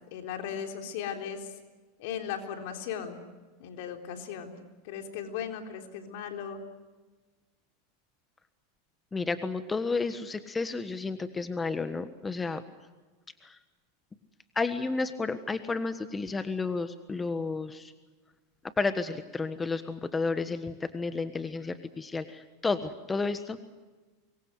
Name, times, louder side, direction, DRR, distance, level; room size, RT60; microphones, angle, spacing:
voice 1, 0.1-1.5 2.0-3.2 3.6-4.6 4.8-6.6, left 8 dB, 65° left, 5 dB, 3.8 m, -37 dB
voice 2, 9.1-12.6 13.4-13.6 14.5-17.9 18.8-23.6, left 4 dB, 15° left, 11 dB, 1.4 m, -31 dB
25.5 x 22.0 x 8.0 m, 1.3 s
hypercardioid pair, 110°, 0 cm